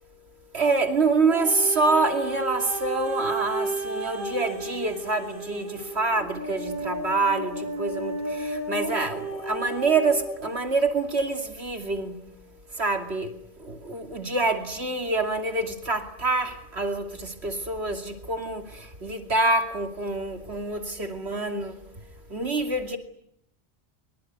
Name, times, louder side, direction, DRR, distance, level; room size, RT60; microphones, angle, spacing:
voice 1, 0.5-12.2 12.8-13.3 13.7-18.6 19.0-21.8 22.3-23.0, right 3 dB, 80° right, 2.9 m, -26 dB
sound 1, 1.3-10.4 11.1-11.2, right 2 dB, 55° right, 7.0 m, -33 dB
24.5 x 24.5 x 9.5 m
omnidirectional pair, 1.1 m